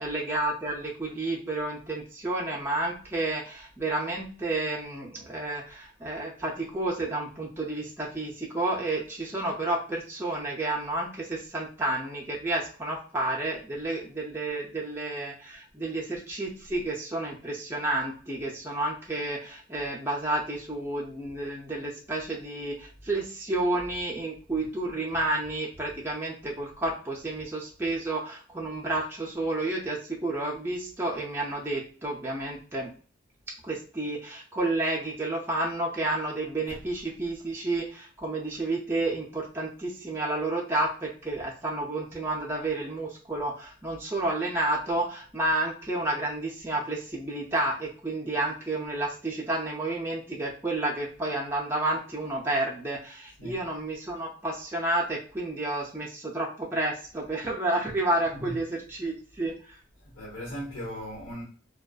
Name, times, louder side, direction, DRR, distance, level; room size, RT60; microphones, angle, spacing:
voice 1, 0.0-32.9 33.6-59.8, right 2 dB, 10° right, 0.4 m, -30 dB
voice 2, 58.3-58.6 60.0-61.4, equal, 80° left, 1.1 m, -39 dB
2.4 x 2.2 x 2.3 m
head